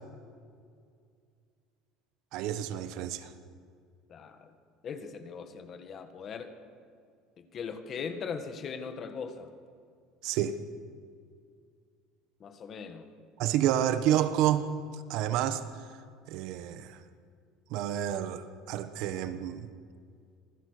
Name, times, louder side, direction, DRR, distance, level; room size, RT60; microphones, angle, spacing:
voice 1, 2.3-3.3 10.2-10.6 13.4-14.7 14.9-15.6 16.3-17.0 17.7-19.7, right 11 dB, 60° right, 12 dB, 1.3 m, -29 dB
voice 2, 4.1-4.5 4.8-6.6 7.4-9.5 12.4-13.1 13.5-13.6, left 6 dB, 30° left, 8 dB, 1.8 m, -40 dB
26.5 x 20.5 x 6.8 m, 2.2 s
cardioid pair, 160°, 0 cm